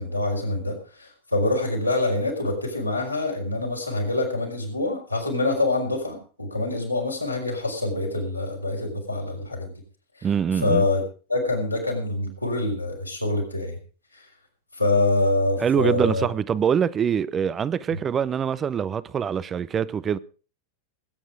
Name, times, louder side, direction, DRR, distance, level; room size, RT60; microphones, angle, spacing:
voice 1, 0.0-9.7 10.2-10.3 10.5-11.0 11.3-13.8 14.1-14.3 14.7-16.3 17.9-18.0, left 2 dB, 85° left, 5.1 m, -25 dB
voice 2, 10.2-10.8 15.6-20.2, right 7 dB, 25° right, 0.6 m, -24 dB
20.0 x 9.3 x 4.9 m
figure-of-eight pair, 90°, 0 cm